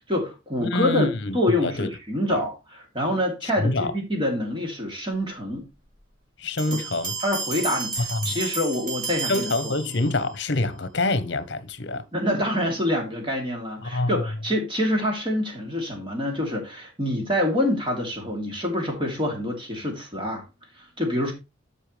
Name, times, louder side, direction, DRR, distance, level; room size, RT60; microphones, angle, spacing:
voice 1, 0.1-5.6 6.7-6.8 7.2-9.7 12.1-20.4 20.8-21.3, left 1 dB, 25° right, 3.1 m, -26 dB
voice 2, 0.6-1.4 1.6-1.9 2.3-2.4 3.4-3.9 6.4-7.1 8.1-8.4 9.3-12.0 13.8-14.2, left 2 dB, 60° left, 1.0 m, -26 dB
sound 1, 6.6-10.4, right 4 dB, 40° right, 3.3 m, -32 dB
12.5 x 5.6 x 3.3 m
head